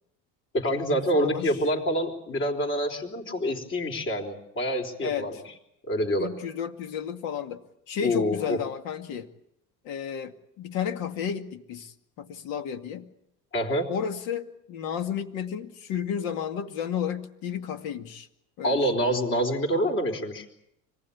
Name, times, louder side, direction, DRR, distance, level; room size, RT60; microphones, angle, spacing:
voice 1, 0.5-5.3 5.9-6.3 8.0-8.6 13.5-13.9 18.6-20.5, equal, 35° left, 2 dB, 3.8 m, -26 dB
voice 2, 1.1-1.6 5.0-5.4 6.2-9.3 9.8-13.1 13.9-18.3 18.6-18.8, left 8 dB, 80° left, 7 dB, 2.3 m, -32 dB
25.5 x 19.5 x 8.6 m, 0.79 s
cardioid pair, 165°, 34 cm